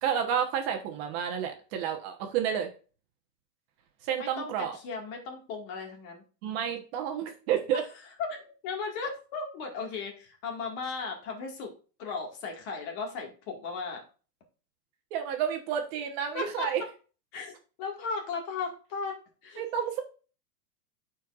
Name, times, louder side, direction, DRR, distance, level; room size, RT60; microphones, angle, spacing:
voice 1, 0.0-2.7 4.0-4.8 6.4-7.8 15.1-16.8 19.6-20.0, right 8 dB, 40° right, 4 dB, 1.1 m, -30 dB
voice 2, 4.1-6.2 7.7-7.8 8.2-11.7 12.0-14.0 16.3-16.7 17.3-17.5 17.8-19.6, left 4 dB, 40° left, 1 dB, 2.0 m, -36 dB
14.0 x 4.6 x 2.5 m, 0.36 s
supercardioid pair, 155°, 49 cm